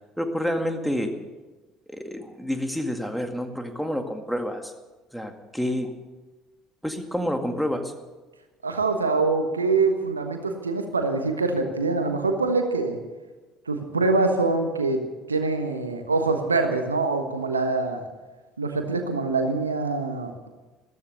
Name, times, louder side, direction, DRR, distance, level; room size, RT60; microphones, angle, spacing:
voice 1, 0.2-1.1 1.9-4.7 5.1-5.9 6.8-7.9, equal, ahead, 5 dB, 2.1 m, -28 dB
voice 2, 8.6-13.0 13.7-15.0 15.3-18.0 18.6-20.5, right 3 dB, 85° right, 6 dB, 1.2 m, -24 dB
14.0 x 13.5 x 6.8 m, 1.2 s
figure-of-eight pair, 55°, 0 cm